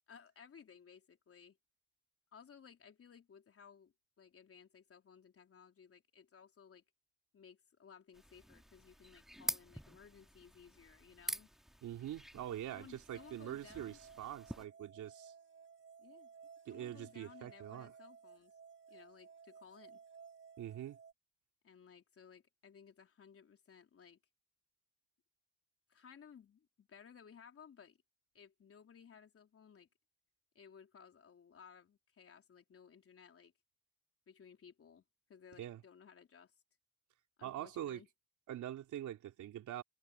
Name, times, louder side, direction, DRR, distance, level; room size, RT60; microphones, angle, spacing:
voice 1, 0.1-1.6 2.3-6.8 7.3-11.5 12.7-14.0 16.0-16.3 16.7-18.5 18.9-20.0 21.6-24.2 25.9-28.0 28.3-29.9 30.5-33.5 34.3-35.0 35.3-36.5 37.4-38.1, left 7 dB, 50° left, 4.0 m, -59 dB
sound 1, 8.1-14.6, equal, ahead, 2.6 m, -47 dB
voice 2, 11.8-15.3 16.7-17.9 20.6-21.0 35.6-35.8 37.4-38.0 38.5-39.8, right 11 dB, 75° right, 3.4 m, -44 dB
sound 2, 13.1-21.1, right 6 dB, 40° right, 7.6 m, -58 dB
cardioid pair, 90°, 30 cm